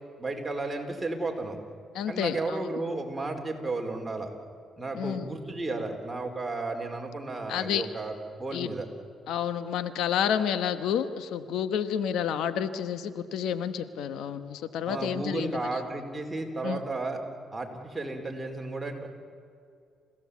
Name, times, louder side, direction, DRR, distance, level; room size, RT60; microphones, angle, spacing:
voice 1, 0.2-1.6 2.1-4.3 4.8-8.9 14.8-17.2 17.5-19.1, right 2 dB, 15° right, 1 dB, 4.3 m, -33 dB
voice 2, 1.9-2.6 4.9-5.3 7.5-7.9 8.5-8.7 9.3-15.6 16.6-16.8, left 8 dB, 85° left, 12 dB, 1.1 m, -30 dB
28.5 x 16.5 x 8.5 m, 2.4 s
cardioid pair, 90°, 0 cm